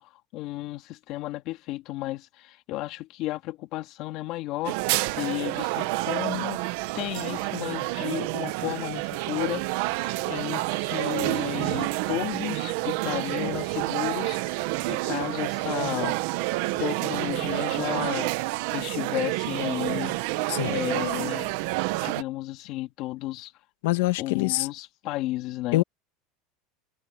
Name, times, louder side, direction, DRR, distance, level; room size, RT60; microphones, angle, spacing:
voice 1, 0.0-6.6 6.9-16.2 16.8-18.3 18.7-20.2 20.6-21.6 22.0-23.5 24.2-25.8, left 17 dB, 50° left, 2.3 m, -33 dB
sound 1, 4.6-22.2, right 20 dB, 65° right, 1.0 m, -29 dB
voice 2, 23.8-24.7 25.7-25.8, left 19 dB, 80° left, 1.8 m, -24 dB
supercardioid pair, 155°, 0 cm